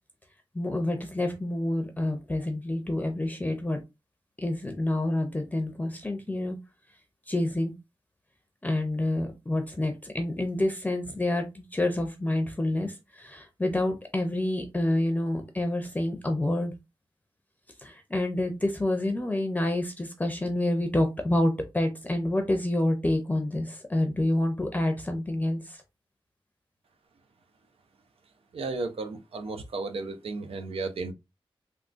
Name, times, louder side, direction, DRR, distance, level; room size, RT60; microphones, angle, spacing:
voice 1, 0.5-3.8 4.4-6.6 7.3-7.7 8.6-16.7 17.8-25.8, left 1 dB, 15° left, 0.6 m, -28 dB
voice 2, 28.5-31.1, right 3 dB, 85° right, 0.6 m, -34 dB
3.6 x 2.3 x 2.5 m
wide cardioid pair, 90°, 10 cm